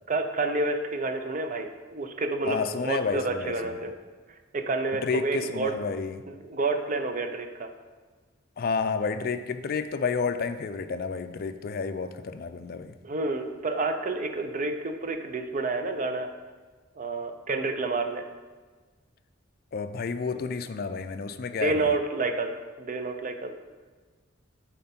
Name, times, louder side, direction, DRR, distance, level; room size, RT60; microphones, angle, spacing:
voice 1, 0.1-3.9 4.5-5.7 6.3-7.7 13.0-16.3 17.0-18.3 20.3-20.4 21.6-23.6, right 3 dB, 40° right, 7 dB, 0.6 m, -29 dB
voice 2, 2.4-3.5 5.0-6.2 8.6-12.9 19.7-21.9, left 5 dB, 50° left, 8 dB, 0.4 m, -30 dB
9.0 x 4.3 x 4.3 m, 1.4 s
head